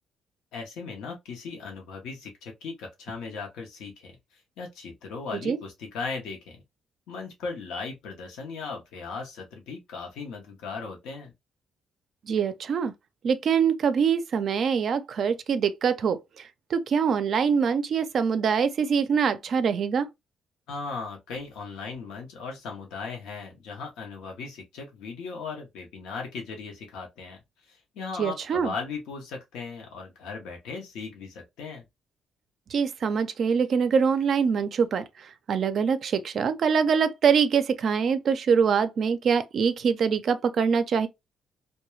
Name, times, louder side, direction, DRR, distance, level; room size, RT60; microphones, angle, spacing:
voice 1, 0.5-4.2 4.6-6.6 7.1-11.3 20.7-31.8, left 4 dB, 90° left, 0.7 m, -37 dB
voice 2, 12.3-12.9 13.2-20.1 28.2-28.7 32.7-41.1, right 6 dB, 60° right, 0.4 m, -24 dB
2.3 x 2.1 x 3.0 m
cardioid pair, 90°, 0 cm